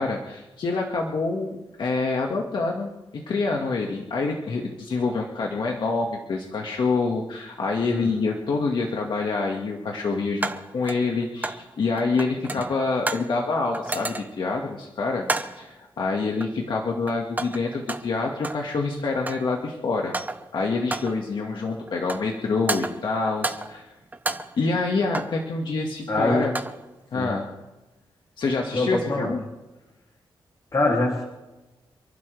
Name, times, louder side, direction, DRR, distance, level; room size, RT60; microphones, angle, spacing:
voice 1, 0.0-1.5 1.8-20.1 20.5-23.9 24.6-26.5 27.1-27.5 28.4-29.4, left 3 dB, 65° left, 0 dB, 1.9 m, -26 dB
sound 1, 8.2-8.3 10.4-11.7 12.0-13.4 13.7-14.5 15.2-15.7 16.4-16.8 17.1-18.7 19.0-19.6 20.0-20.5 20.9-21.3 21.9-22.4 22.7-23.8 24.1-25.4 26.3-26.8, right 2 dB, 20° right, 1.2 m, -32 dB
voice 2, 26.1-26.5 27.1-27.3 28.7-29.3 30.7-31.2, left 2 dB, 40° left, -2 dB, 3.1 m, -23 dB
28.0 x 11.5 x 3.5 m, 1.1 s
cardioid pair, 80°, 9 cm